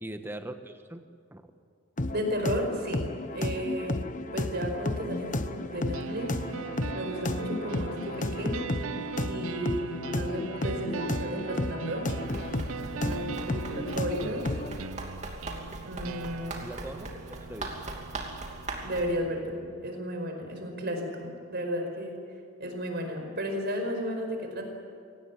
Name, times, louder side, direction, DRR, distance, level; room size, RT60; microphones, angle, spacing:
voice 1, 0.0-1.1 1.3-1.5 16.6-17.1 17.4-17.7, right 1 dB, 10° right, 7 dB, 1.3 m, -40 dB
sound 1, 2.0-14.8, left 2 dB, 35° left, 0.9 m, -33 dB
voice 2, 2.1-4.1 4.3-6.6 6.9-8.6 9.2-12.1 12.9-14.6 15.8-16.6 18.8-22.2 22.6-24.6, equal, 45° right, 4 dB, 5.0 m, -33 dB
sound 2, 5.9-19.9, right 5 dB, 65° right, 0.7 m, -40 dB
Run, 12.2-19.1, right 2 dB, 30° right, 2.8 m, -40 dB
25.0 x 18.0 x 9.9 m, 2.3 s
head